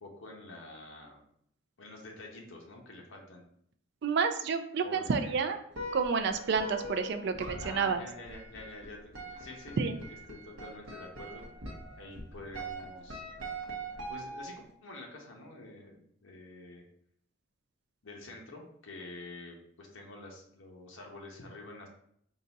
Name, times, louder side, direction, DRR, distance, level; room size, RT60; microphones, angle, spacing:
voice 1, 0.0-1.2 1.8-3.5 4.8-5.3 7.6-11.4 12.0-13.2 14.1-16.8 18.0-21.9, left 2 dB, 70° left, 0 dB, 0.9 m, -47 dB
voice 2, 4.0-5.6 5.9-8.0 9.8-10.0, right 5 dB, 55° right, 8 dB, 0.4 m, -29 dB
sound 1, 5.7-14.7, right 1 dB, 70° right, 0.8 m, -42 dB
3.9 x 2.3 x 3.9 m, 0.69 s
head